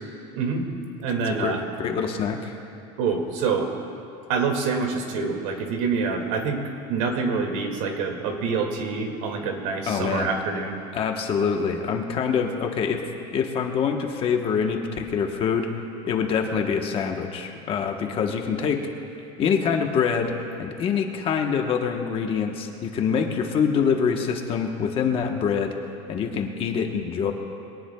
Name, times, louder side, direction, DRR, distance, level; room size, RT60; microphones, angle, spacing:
voice 1, 0.3-0.6 1.0-1.6 3.0-3.7 4.3-6.6 6.9-10.8, right 5 dB, 80° right, 3 dB, 2.2 m, -26 dB
voice 2, 1.3-2.6 9.9-10.3 10.9-13.0 13.3-15.7 16.0-18.9 19.4-20.3 20.6-25.7 26.1-27.3, left 6 dB, 35° left, 3 dB, 1.2 m, -25 dB
22.0 x 18.0 x 2.3 m, 2.6 s
cardioid pair, 155°, 17 cm